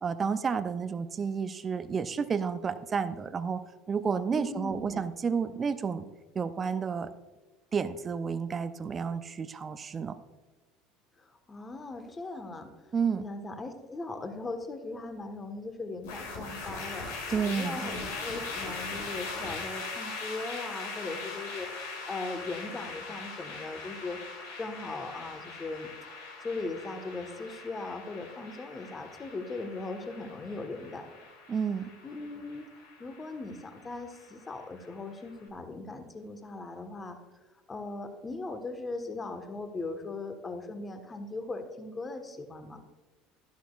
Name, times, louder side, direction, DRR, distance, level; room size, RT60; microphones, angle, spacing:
voice 1, 0.0-3.6 3.9-6.0 6.3-7.1 7.7-10.2 12.9-13.2 17.3-17.9 31.5-32.0, right 6 dB, 30° right, 12 dB, 0.6 m, -31 dB
voice 2, 4.3-5.0 11.2-17.1 17.5-25.9 26.4-31.1 32.0-32.7 33.0-37.2 37.7-42.8, left 3 dB, 25° left, 7 dB, 1.4 m, -39 dB
sound 1, 16.0-35.3, left 4 dB, 75° left, 2.3 m, -41 dB
12.0 x 11.5 x 2.5 m, 1.2 s
hypercardioid pair, 70°, 0 cm